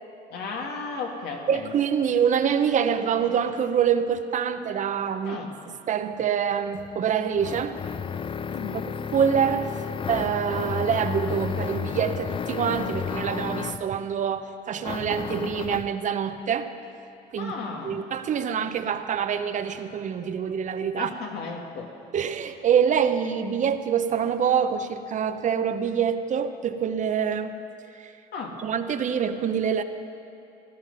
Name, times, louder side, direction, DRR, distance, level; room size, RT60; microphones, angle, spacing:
voice 1, 0.3-1.7 5.2-5.5 8.5-8.9 17.4-18.0 20.9-21.9 28.3-28.6, left 4 dB, 75° left, 1 dB, 2.1 m, -34 dB
voice 2, 1.5-5.4 5.9-7.8 9.1-9.7 10.1-16.7 17.3-17.5 17.8-21.1 22.1-27.5 28.0-28.1 28.6-29.8, right 7 dB, 45° right, 9 dB, 0.8 m, -25 dB
sound 1, 6.7-13.9 14.8-16.0, left 7 dB, 30° left, 0.5 m, -32 dB
17.5 x 12.5 x 5.5 m, 2.7 s
cardioid pair, 110°, 17 cm